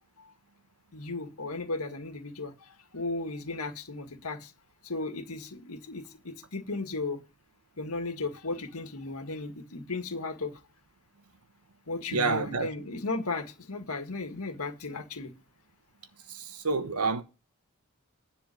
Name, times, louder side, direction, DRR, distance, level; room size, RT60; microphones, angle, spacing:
voice 1, 0.9-4.5 4.8-7.2 7.8-10.6 11.9-15.3, left 3 dB, 80° left, 1.8 m, -35 dB
voice 2, 12.1-12.7 16.3-17.2, right 4 dB, 85° right, 1.3 m, -28 dB
10.5 x 4.4 x 7.8 m
head